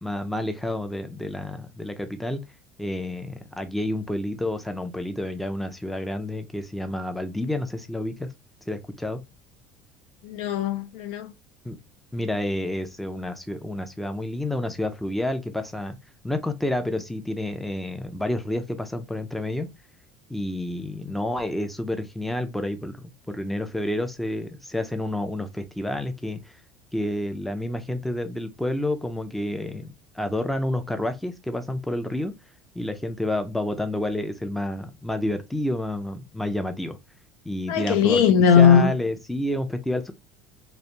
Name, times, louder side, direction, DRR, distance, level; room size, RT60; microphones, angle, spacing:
voice 1, 0.0-2.4 2.8-8.3 8.7-9.2 11.6-11.8 12.1-16.0 16.2-19.7 20.3-26.5 26.9-32.3 32.8-37.0 37.4-38.2 38.6-40.1, left 1 dB, 5° left, 0.4 m, -29 dB
voice 2, 10.2-11.3 37.7-38.9, left 7 dB, 75° left, 0.4 m, -18 dB
2.5 x 2.1 x 2.8 m
supercardioid pair, 100°, 5 cm